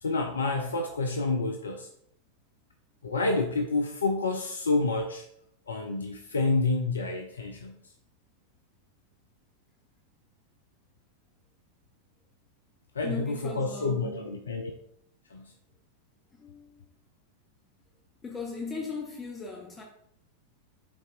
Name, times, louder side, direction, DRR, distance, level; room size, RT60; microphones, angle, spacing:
voice 1, 0.0-1.9 3.0-5.3 5.7-7.9 12.9-14.7 15.3-15.5, left 3 dB, 70° left, 0.5 m, -29 dB
voice 2, 13.0-14.3 16.3-16.8 18.2-19.8, left 4 dB, 20° left, 1.0 m, -38 dB
10.5 x 4.1 x 2.4 m
figure-of-eight pair, 90°, 0 cm